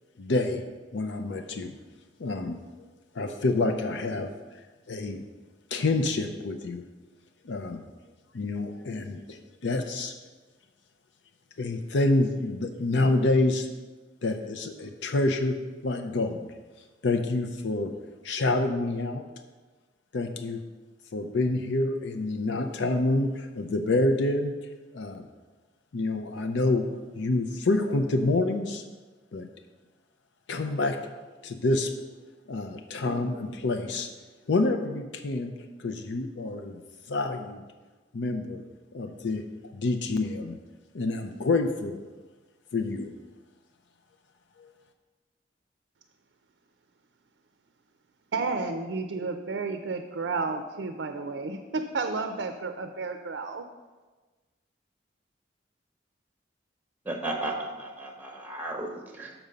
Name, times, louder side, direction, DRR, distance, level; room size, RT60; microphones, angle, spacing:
voice 1, 0.2-0.6 0.9-1.8 2.2-2.6 3.1-4.6 4.9-5.2 5.7-6.8 7.4-7.8 8.3-10.1 11.6-13.7 14.2-15.6 15.8-16.5 17.0-17.9 18.2-19.2 20.1-20.6 21.1-24.5 24.9-25.3 25.9-26.9 27.1-28.8 29.3-29.5 30.5-31.0 31.4-31.9 32.5-34.1 34.5-35.5 35.8-36.8 37.1-37.6 38.1-38.6 38.9-39.4 39.7-40.6 40.9-42.0 42.7-43.1 44.6-44.7, left 2 dB, 85° left, 6 dB, 0.6 m, -27 dB
voice 2, 48.3-53.6, right 4 dB, 80° right, 7 dB, 0.5 m, -31 dB
voice 3, 57.0-59.4, right 2 dB, 10° right, 3 dB, 0.8 m, -34 dB
6.0 x 5.1 x 6.7 m, 1.3 s
head